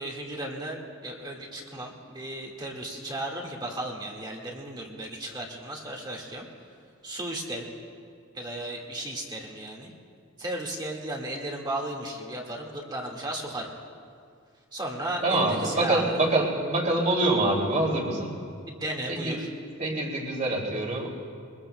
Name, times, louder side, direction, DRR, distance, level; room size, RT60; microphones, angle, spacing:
voice 1, 0.0-6.5 7.0-7.7 8.3-9.9 10.4-13.7 14.7-16.1 18.8-19.5, right 1 dB, 20° right, -1 dB, 1.8 m, -35 dB
voice 2, 15.2-18.3 19.1-19.4 19.8-21.1, right 2 dB, 40° right, -1 dB, 2.6 m, -25 dB
23.5 x 21.5 x 2.2 m, 2.2 s
head